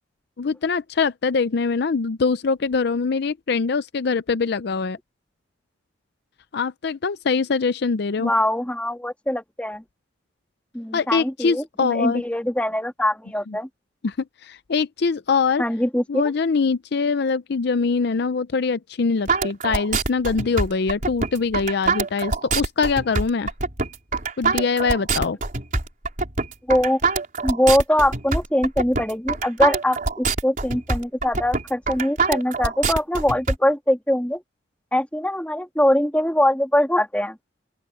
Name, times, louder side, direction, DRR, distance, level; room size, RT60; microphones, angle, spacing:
voice 1, 0.4-5.0 6.5-8.3 10.9-12.2 13.5-13.6 14.0-14.1 14.4-15.6 16.1-23.5 24.4-25.4, left 4 dB, 60° left, 0.5 m, -23 dB
voice 2, 8.2-9.8 10.7-13.7 15.6-16.3 26.7-27.0 27.4-34.4 34.9-37.4, left 1 dB, 5° left, 2.7 m, -22 dB
sound 1, 19.3-33.6, right 4 dB, 45° right, 4.4 m, -24 dB
open air
head